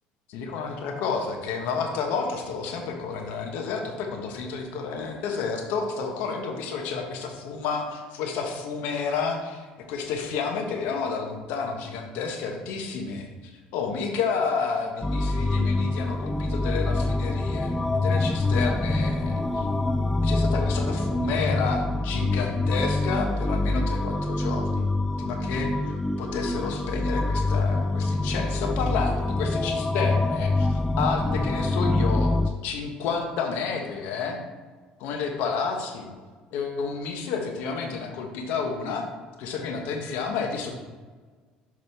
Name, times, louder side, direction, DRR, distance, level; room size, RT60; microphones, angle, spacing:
voice 1, 0.3-17.7 18.0-19.7 20.2-24.9 25.2-32.3 32.6-34.4 35.0-36.1 36.5-39.0 39.4-40.8, left 5 dB, 75° left, 3 dB, 1.0 m, -30 dB
sound 1, 15.0-32.5, left 2 dB, 10° left, 0.3 m, -25 dB
6.0 x 4.8 x 3.5 m, 1.4 s
supercardioid pair, 90°, 3 cm